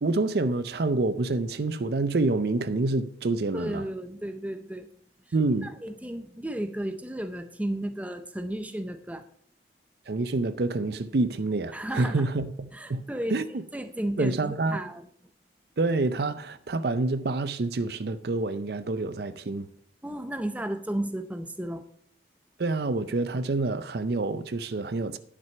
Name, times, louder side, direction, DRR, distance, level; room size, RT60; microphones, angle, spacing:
voice 1, 0.0-3.8 5.3-5.7 10.1-13.0 13.3-13.4 14.2-14.8 15.8-19.7 22.6-25.2, right 3 dB, 55° right, 0.5 m, -27 dB
voice 2, 3.5-4.9 5.3-5.4 5.6-9.2 11.7-12.3 12.7-15.1 20.0-21.9, right 1 dB, 10° right, 0.6 m, -33 dB
10.5 x 6.2 x 5.6 m
head